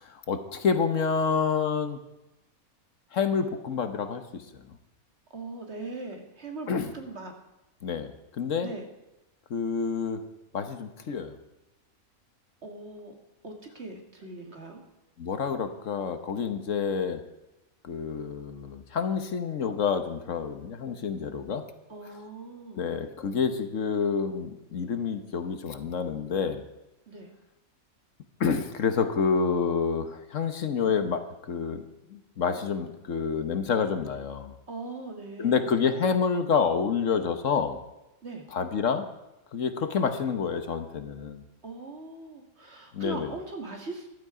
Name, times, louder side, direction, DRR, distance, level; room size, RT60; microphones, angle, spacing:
voice 1, 0.0-2.0 3.1-4.6 6.7-6.9 7.8-8.1 8.4-8.7 9.5-10.2 10.5-11.3 15.2-17.2 17.8-21.6 22.7-26.6 28.4-31.8 32.1-34.5 35.4-37.8 38.5-39.1 39.5-41.4 42.9-43.3, left 6 dB, 65° left, 9 dB, 1.4 m, -28 dB
voice 2, 5.3-7.3 8.6-8.8 12.6-13.2 13.4-14.8 21.9-22.8 27.1-27.3 34.7-35.6 38.2-38.5 41.6-44.1, right 3 dB, 50° right, 3 dB, 2.2 m, -40 dB
14.5 x 12.0 x 4.9 m, 0.97 s
omnidirectional pair, 1.5 m